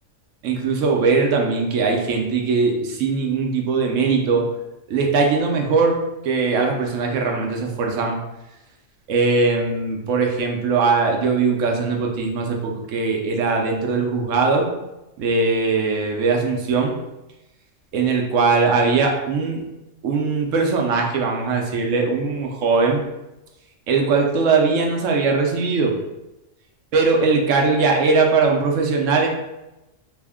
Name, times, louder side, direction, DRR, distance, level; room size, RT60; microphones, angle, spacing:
voice 1, 0.4-4.4 4.9-8.2 9.1-14.7 15.2-17.0 17.9-19.6 20.0-23.0 23.9-25.9 26.9-29.3, right 4 dB, 75° right, 1 dB, 1.0 m, -20 dB
3.4 x 2.1 x 3.5 m, 0.96 s
omnidirectional pair, 1.3 m